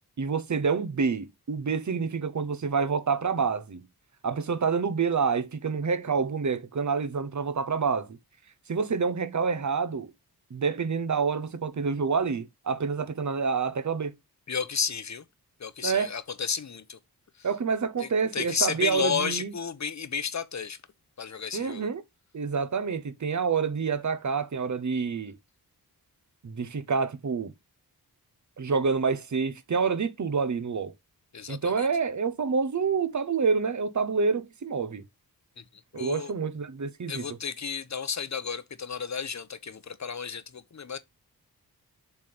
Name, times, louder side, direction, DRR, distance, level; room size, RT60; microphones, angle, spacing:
voice 1, 0.2-3.8 4.2-8.2 8.7-10.1 10.5-14.1 15.8-16.1 17.4-19.5 21.5-22.0 22.3-25.3 26.4-27.5 28.6-30.9 31.5-35.0 35.9-37.2, right 5 dB, 50° right, 1.0 m, -27 dB
voice 2, 14.5-15.2 15.6-17.0 17.4-17.5 18.0-20.8 21.2-21.9 31.3-31.9 35.6-35.7 35.9-36.3 37.1-41.0, left 6 dB, 45° left, 0.9 m, -32 dB
7.2 x 3.5 x 6.0 m
wide cardioid pair, 90°, 38 cm